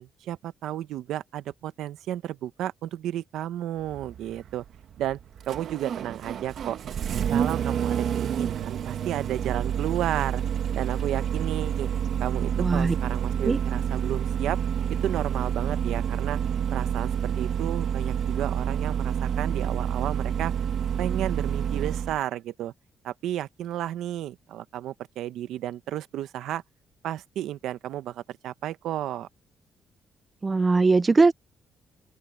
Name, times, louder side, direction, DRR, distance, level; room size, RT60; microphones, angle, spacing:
voice 1, 0.0-4.6 5.0-5.2 5.5-6.8 7.3-10.4 10.7-11.9 12.2-14.6 14.9-16.4 16.7-20.5 21.0-22.7 23.0-26.6 27.0-29.3, right 12 dB, 85° right, 0.8 m, -32 dB
Engine starting, 3.8-22.2, right 8 dB, 55° right, 1.1 m, -28 dB
voice 2, 12.6-12.9 13.4-13.6 30.4-31.3, right 3 dB, 20° right, 0.3 m, -20 dB
open air
cardioid pair, 160°, 0 cm